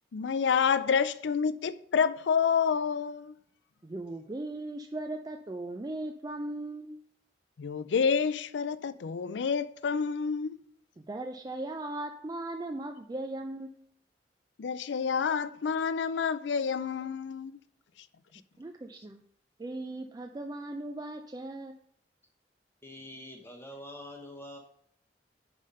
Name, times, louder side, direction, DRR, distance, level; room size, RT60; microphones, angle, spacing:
voice 1, 0.1-3.3 7.6-10.6 14.6-17.6, left 6 dB, 80° left, 0.4 m, -28 dB
voice 2, 3.8-7.0 11.0-13.9 18.6-19.2 19.6-21.8, right 2 dB, 20° right, 0.3 m, -38 dB
voice 3, 22.8-24.6, left 1 dB, 15° left, 1.0 m, -45 dB
5.5 x 5.0 x 5.4 m
head